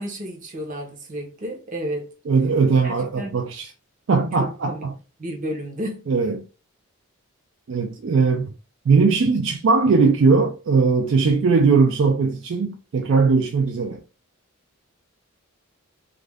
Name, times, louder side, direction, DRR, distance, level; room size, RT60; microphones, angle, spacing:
voice 1, 0.0-2.1 2.8-3.4 4.4-4.9 5.2-6.0, equal, 35° right, 0.7 m, -31 dB
voice 2, 2.3-3.7 4.1-4.9 6.1-6.5 7.7-8.5 8.9-14.0, right 4 dB, 55° right, 0.3 m, -19 dB
2.4 x 2.1 x 3.3 m
head